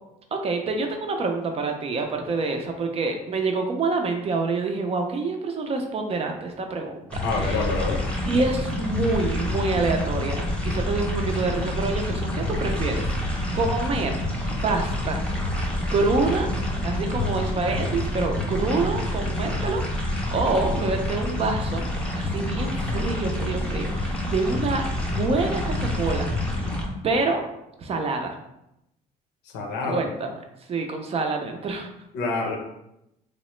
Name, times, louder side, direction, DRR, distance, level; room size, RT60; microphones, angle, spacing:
voice 1, 0.3-7.6 8.3-14.2 14.6-15.2 15.9-16.5 16.8-21.9 22.1-26.3 26.6-26.8 27.0-27.4 27.8-28.4 29.8-30.3 30.7-31.9, right 3 dB, 35° right, 4 dB, 0.4 m, -27 dB
sound 1, 7.1-26.8, left 1 dB, 5° left, 0.6 m, -27 dB
voice 2, 7.2-8.0 29.4-30.0 32.1-32.6, left 3 dB, 85° left, 1 dB, 0.6 m, -27 dB
3.0 x 2.0 x 3.0 m, 0.84 s
cardioid pair, 110°, 17 cm